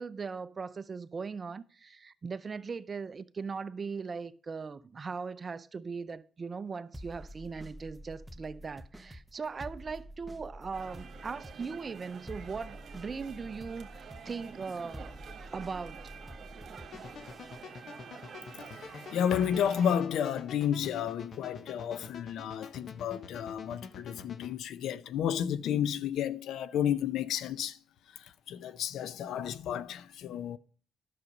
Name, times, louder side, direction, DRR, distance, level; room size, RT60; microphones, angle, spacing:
voice 1, 0.0-15.1 15.5-16.0, right 5 dB, 35° right, 0.6 m, -39 dB
sound 1, 6.9-17.6, equal, 5° right, 0.9 m, -48 dB
sound 2, 10.7-20.0, right 6 dB, 55° right, 1.7 m, -48 dB
sound 3, 16.9-24.5, left 5 dB, 60° left, 1.0 m, -47 dB
voice 2, 18.8-27.8 28.2-30.6, left 9 dB, 80° left, 0.6 m, -32 dB
11.0 x 6.6 x 5.2 m
cardioid pair, 90°, 0 cm